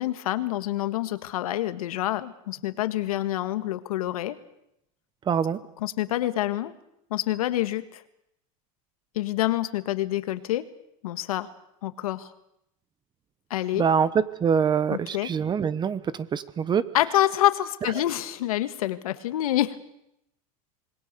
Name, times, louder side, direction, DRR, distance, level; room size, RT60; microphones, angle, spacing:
voice 1, 0.0-4.4 5.8-6.7 7.1-8.0 9.2-10.6 11.0-11.5 11.8-12.3 13.5-13.8 14.9-15.3 16.9-19.8, left 14 dB, 90° left, 11 dB, 1.8 m, -27 dB
voice 2, 5.3-5.6 13.7-16.8, right 7 dB, 25° right, 16 dB, 1.2 m, -24 dB
26.5 x 21.0 x 6.9 m, 0.80 s
supercardioid pair, 130°, 18 cm